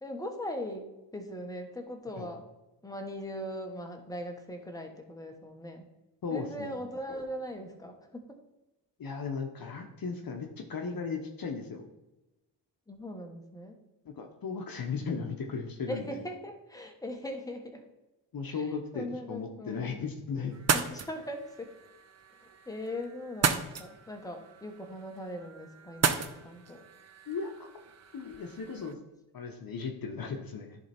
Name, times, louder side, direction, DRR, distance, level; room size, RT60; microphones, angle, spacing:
voice 1, 0.0-2.4 2.8-5.9 6.3-8.2 12.9-13.8 15.9-17.8 18.5-18.7 18.9-20.0 20.7-21.7 22.4-26.8, equal, 10° left, 3 dB, 1.4 m, -40 dB
voice 2, 6.2-6.8 9.0-11.9 14.0-16.2 18.3-20.6 27.3-27.7 28.1-29.0 29.3-30.8, left 5 dB, 50° left, 4 dB, 1.0 m, -36 dB
sound 1, 20.5-28.9, right 6 dB, 35° right, 0.7 m, -35 dB
10.5 x 3.5 x 4.3 m, 0.99 s
supercardioid pair, 50°, 44 cm